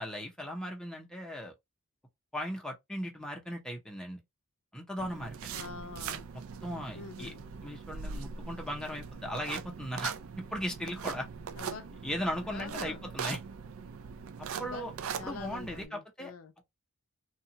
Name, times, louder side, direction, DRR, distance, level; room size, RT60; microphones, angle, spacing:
voice 1, 0.0-1.5 2.3-4.2 4.7-5.6 6.3-11.3 12.0-13.4 14.4-14.9 15.2-16.3, equal, 5° left, 0.6 m, -38 dB
sound 1, 5.0-15.8, right 6 dB, 60° right, 0.4 m, -41 dB
voice 2, 5.5-6.3 6.9-7.4 11.6-11.9 12.5-13.0 14.5-14.9 15.2-16.5, left 5 dB, 60° left, 0.5 m, -45 dB
2.8 x 2.2 x 2.7 m
head